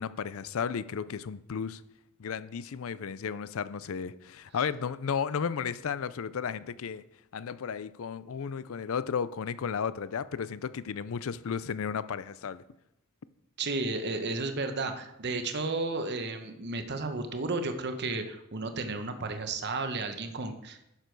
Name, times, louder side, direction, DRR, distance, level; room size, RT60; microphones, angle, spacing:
voice 1, 0.0-1.8 2.2-7.0 7.3-12.6, left 6 dB, 65° left, 0.4 m, -34 dB
voice 2, 13.6-20.8, right 3 dB, 50° right, 1.0 m, -33 dB
11.5 x 6.7 x 4.6 m
head